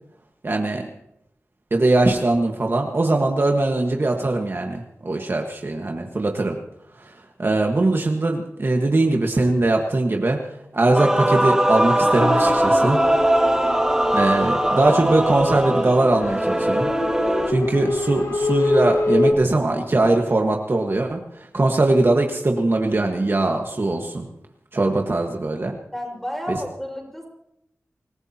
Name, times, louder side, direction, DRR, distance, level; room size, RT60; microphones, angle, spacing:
voice 1, 0.4-0.9 1.7-6.6 7.0-7.1 7.4-10.4 10.7-13.0 14.1-16.9 17.5-24.2 24.7-25.8, right 2 dB, 45° right, 2 dB, 1.5 m, -21 dB
Male singing / Female singing / Musical instrument, 10.9-17.5, right 1 dB, 10° right, 1.6 m, -20 dB
sound 1, 12.1-19.3, left 2 dB, 80° left, 2.4 m, -26 dB
voice 2, 13.4-13.7 25.9-27.3, equal, 5° left, 0 dB, 5.0 m, -32 dB
26.5 x 16.0 x 2.9 m, 0.79 s
wide cardioid pair, 85°, 5 cm